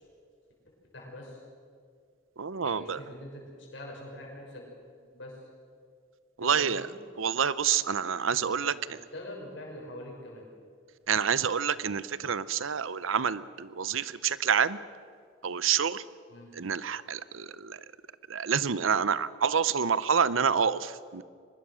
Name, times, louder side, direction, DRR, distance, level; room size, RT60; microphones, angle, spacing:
voice 1, 0.9-1.4 2.6-3.4 3.7-4.6 5.1-5.4 6.4-6.9 8.6-10.4 16.3-16.5 20.3-20.5, left 1 dB, 70° left, -2 dB, 6.0 m, -44 dB
voice 2, 2.4-3.0 6.4-6.9 7.2-8.7 11.1-14.8 15.4-16.0 16.5-17.8 18.3-21.2, right 7 dB, 85° right, 17 dB, 0.7 m, -28 dB
23.5 x 20.5 x 6.4 m, 2.1 s
head